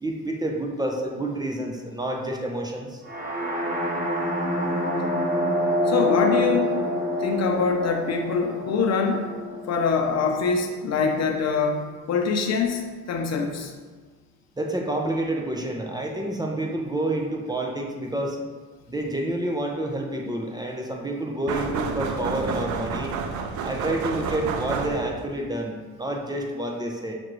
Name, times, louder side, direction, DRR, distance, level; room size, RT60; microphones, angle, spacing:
voice 1, 0.0-3.0 14.6-18.4 18.9-23.1 23.6-27.1, right 1 dB, 15° right, 0 dB, 0.5 m, -29 dB
sound 1, 3.0-10.9, left 1 dB, 30° right, 1.0 m, -27 dB
voice 2, 5.9-6.8 7.2-9.3 9.7-13.7, left 5 dB, 60° left, 2 dB, 0.7 m, -24 dB
sound 2, 21.5-25.3, right 5 dB, 75° right, 0.5 m, -30 dB
6.0 x 2.6 x 3.0 m, 1.4 s
cardioid pair, 90°, 30 cm